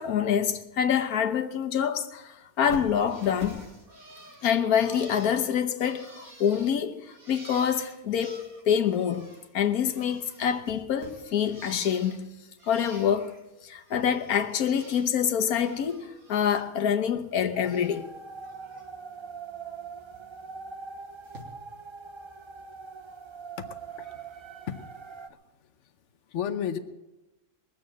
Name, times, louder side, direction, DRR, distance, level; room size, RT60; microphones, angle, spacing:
voice 1, 0.0-3.6 4.4-12.3 12.7-13.3 13.6-18.1, left 8 dB, 90° left, 1.4 m, -26 dB
Bird, 2.7-9.5 9.7-12.2 12.6-13.4 13.8-15.1 15.4-16.7 17.0-18.0 18.4-18.8 20.1-20.2 21.2-21.4, right 1 dB, 80° right, 3.0 m, -48 dB
sound 1, 17.5-25.3, right 5 dB, 45° right, 0.3 m, -43 dB
voice 2, 23.6-24.2 24.7-24.9 25.3-25.4 26.3-26.8, left 8 dB, 60° left, 1.1 m, -33 dB
20.5 x 7.3 x 7.6 m
omnidirectional pair, 1.5 m